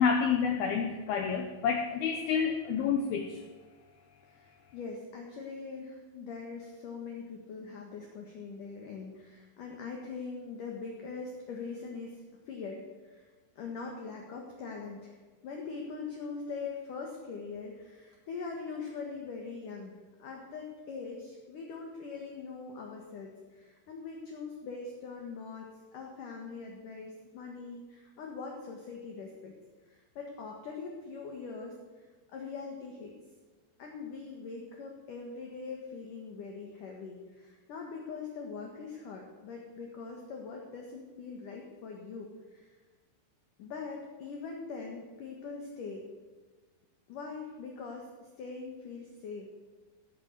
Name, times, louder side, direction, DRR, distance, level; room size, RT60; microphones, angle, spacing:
voice 1, 0.0-3.4, left 6 dB, 75° left, 5 dB, 2.3 m, -29 dB
voice 2, 4.3-13.3 13.6-15.2 15.4-19.9 20.2-25.7 25.9-29.5 29.9-32.0 32.3-33.1 33.8-42.7 43.6-46.0 47.1-49.5, left 4 dB, 60° left, 1 dB, 2.6 m, -42 dB
17.5 x 8.9 x 8.0 m, 1.4 s
omnidirectional pair, 5.4 m